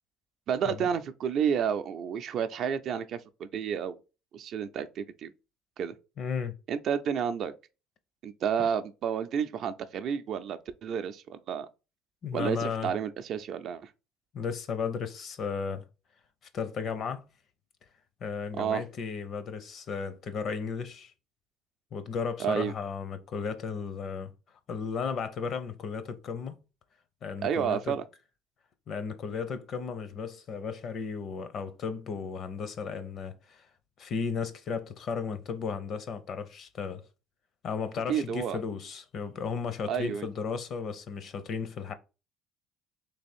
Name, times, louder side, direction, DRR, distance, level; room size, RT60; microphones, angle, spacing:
voice 1, 0.5-4.0 4.3-5.3 5.8-5.9 6.7-7.5 8.2-11.7 12.3-13.8 18.6-18.8 22.4-22.7 27.4-28.0 38.1-38.6 39.9-40.3, right 8 dB, 55° right, 0.4 m, -30 dB
voice 2, 6.2-6.5 8.6-8.7 12.2-12.9 14.3-15.8 16.5-17.2 18.2-21.1 21.9-24.3 24.7-26.6 27.2-28.0 28.9-33.7 34.0-37.0 37.6-41.9, left 5 dB, 50° left, 0.6 m, -34 dB
3.4 x 3.1 x 4.3 m
cardioid pair, 120°, 0 cm